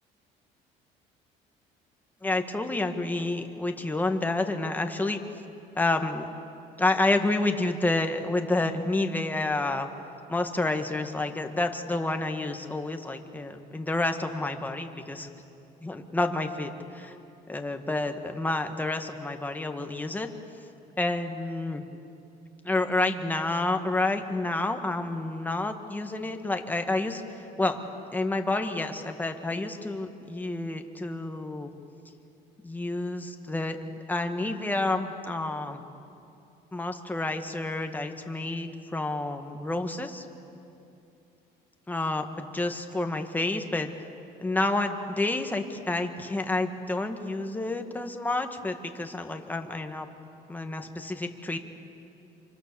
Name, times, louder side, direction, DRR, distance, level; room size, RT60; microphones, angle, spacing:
voice 1, 2.2-5.2 5.8-6.3 6.8-9.9 10.3-15.3 15.8-17.2 17.5-20.3 21.0-21.8 22.6-27.8 28.1-31.7 32.6-35.8 36.7-40.2 41.9-43.9 44.4-50.1 50.5-51.6, left 2 dB, 10° left, 5 dB, 1.9 m, -29 dB
27.5 x 25.0 x 7.2 m, 2.7 s
cardioid pair, 100°, 17 cm